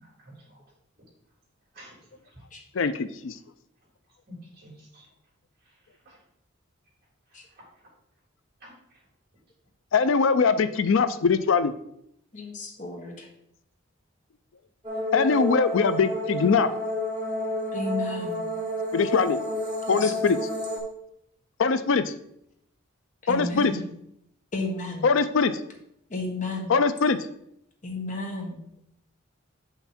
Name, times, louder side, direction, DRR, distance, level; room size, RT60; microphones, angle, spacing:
voice 1, 0.0-0.6 1.7-2.0 4.3-5.1 6.1-6.2 7.6-7.7 8.6-8.7, equal, 45° right, -5 dB, 3.4 m, -48 dB
voice 2, 2.7-3.3 9.9-11.7 15.1-16.7 18.9-19.4 19.9-20.4 21.6-22.1 23.3-23.7 25.0-25.6 26.7-27.2, left 5 dB, 65° left, 12 dB, 0.4 m, -22 dB
voice 3, 12.3-13.3 17.7-18.4 19.9-20.4 23.2-23.9 24.5-25.1 26.1-26.7 27.8-28.6, left 2 dB, 35° left, 1 dB, 1.3 m, -33 dB
sound 1, 14.8-20.8, left 1 dB, 25° right, 3.2 m, -30 dB
8.0 x 5.8 x 4.2 m, 0.75 s
head